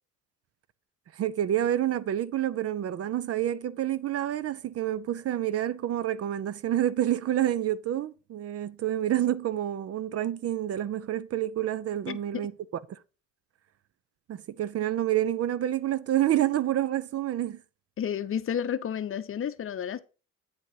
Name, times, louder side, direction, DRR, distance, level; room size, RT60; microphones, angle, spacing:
voice 1, 1.1-12.5 12.9-13.0 14.3-17.6, right 12 dB, 50° right, 0.5 m, -28 dB
voice 2, 12.1-12.4 18.0-20.0, left 8 dB, 45° left, 0.7 m, -31 dB
8.8 x 4.0 x 4.6 m
cardioid pair, 90°, 30 cm